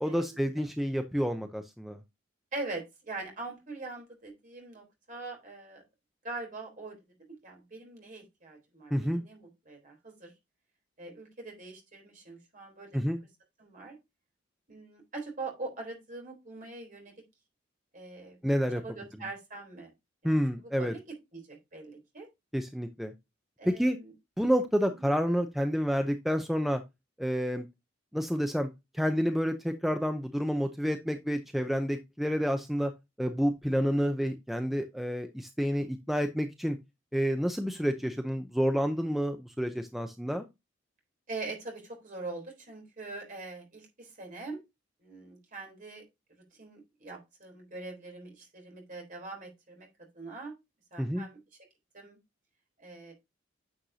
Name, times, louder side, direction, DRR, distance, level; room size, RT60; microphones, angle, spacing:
voice 1, 0.0-2.0 8.9-9.2 12.9-13.2 18.4-18.8 20.2-20.9 22.5-23.1 23.6-24.0 24.4-26.8 27.2-27.6 28.1-28.7 28.9-32.9 33.2-36.8 37.1-40.4 51.0-51.3, equal, ahead, 6 dB, 0.6 m, -29 dB
voice 2, 2.5-5.8 6.2-7.0 7.4-10.3 11.0-13.0 13.6-14.0 14.7-17.1 17.9-18.4 18.7-19.9 20.2-20.4 20.6-22.3 23.6-24.1 24.9-25.1 41.3-44.6 45.0-46.0 46.3-49.9 50.1-50.5 50.9-51.4 51.9-52.2 52.8-53.1, right 3 dB, 45° right, 1 dB, 3.7 m, -42 dB
10.0 x 6.5 x 2.8 m, 0.22 s
head